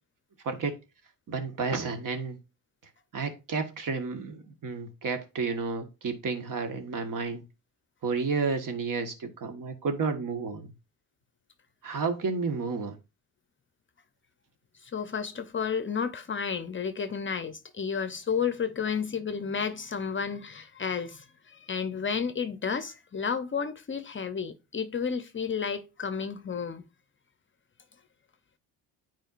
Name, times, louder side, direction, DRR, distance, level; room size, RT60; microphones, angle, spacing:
voice 1, 0.4-0.7 1.3-2.4 3.1-7.4 8.0-10.7 11.8-13.0, right 4 dB, 50° right, 1.5 m, -31 dB
voice 2, 14.8-26.9, left 6 dB, 30° left, 0.7 m, -32 dB
9.0 x 4.5 x 2.5 m
supercardioid pair, 65°, 42 cm